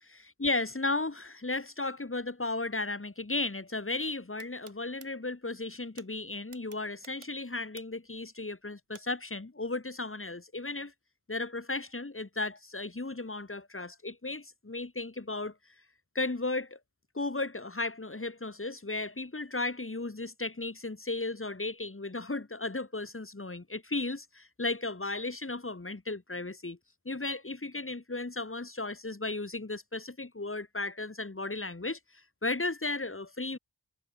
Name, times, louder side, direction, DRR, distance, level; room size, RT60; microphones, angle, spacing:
voice 1, 0.0-10.9 11.3-15.5 16.1-16.8 17.1-26.8 27.0-32.0 32.4-33.6, left 2 dB, 25° left, 3.1 m, -35 dB
sound 1, 4.4-5.1 6.0-6.1 6.5-8.1 8.9-9.0, right 6 dB, 85° right, 3.9 m, -52 dB
wide cardioid pair, 70°, 48 cm